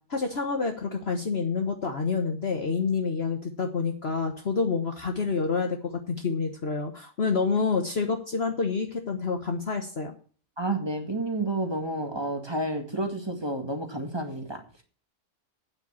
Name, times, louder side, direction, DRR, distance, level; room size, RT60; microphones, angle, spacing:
voice 1, 0.1-10.1, left 4 dB, 50° left, 4 dB, 1.4 m, -28 dB
voice 2, 10.6-14.6, right 2 dB, 20° right, 4 dB, 2.0 m, -30 dB
9.2 x 6.9 x 8.7 m, 0.41 s
omnidirectional pair, 1.4 m